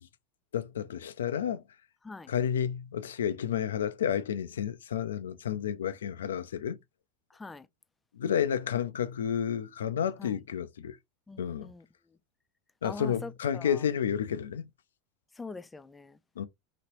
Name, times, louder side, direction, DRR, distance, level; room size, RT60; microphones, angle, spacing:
voice 1, 0.5-1.6 2.3-6.8 8.1-11.0 11.4-11.7 12.8-14.7 16.4-16.5, left 8 dB, 85° left, 0.4 m, -31 dB
voice 2, 7.3-7.7 10.2-10.3 11.3-11.9 12.8-13.8 15.3-16.2, left 3 dB, 15° left, 0.4 m, -43 dB
2.9 x 2.9 x 2.9 m
hypercardioid pair, 95°, 0 cm